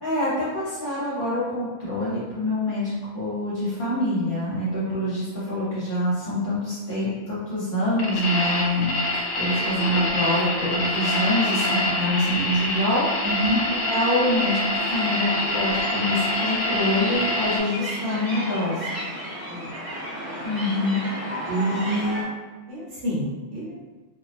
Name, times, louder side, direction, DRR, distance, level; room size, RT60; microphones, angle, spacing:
voice 1, 0.0-13.0 13.9-18.9 20.4-21.0, left 1 dB, 45° left, -10 dB, 0.9 m, -25 dB
sound 1, 8.0-17.6, left 1 dB, 80° left, 0.9 m, -25 dB
voice 2, 13.2-13.6 19.5-19.7 21.4-22.2 22.7-23.8, right 1 dB, 65° right, -8 dB, 1.1 m, -27 dB
sound 2, 14.7-22.2, equal, 40° right, 0.5 m, -34 dB
2.3 x 2.2 x 2.4 m, 1.3 s
omnidirectional pair, 1.3 m